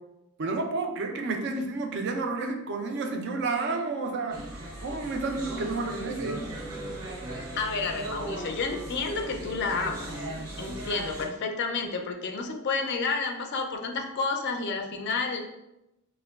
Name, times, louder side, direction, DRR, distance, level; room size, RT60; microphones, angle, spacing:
voice 1, 0.4-4.4 4.8-6.4, right 3 dB, 50° right, 4 dB, 0.4 m, -30 dB
sound 1, 4.3-11.3, right 1 dB, 85° right, 0.9 m, -38 dB
voice 2, 7.6-10.1 10.6-15.4, left 4 dB, 50° left, 4 dB, 0.3 m, -30 dB
4.3 x 2.2 x 2.2 m, 0.91 s
head